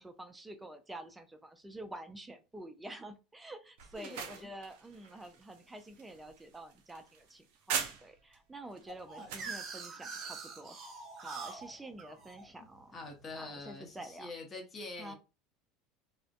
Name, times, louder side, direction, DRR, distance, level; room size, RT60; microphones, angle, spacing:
voice 1, 0.0-10.8 11.2-12.9 13.4-14.3 15.0-15.1, right 1 dB, 10° right, 0.4 m, -48 dB
sound 1, 3.8-8.4 8.8-9.5, right 7 dB, 70° right, 0.5 m, -41 dB
voice 2, 4.0-4.5 9.2-9.5 12.9-15.1, left 3 dB, 30° left, 0.7 m, -46 dB
sound 2, 8.9-13.7, right 4 dB, 40° right, 0.8 m, -45 dB
2.5 x 2.1 x 2.4 m
hypercardioid pair, 85°, 0 cm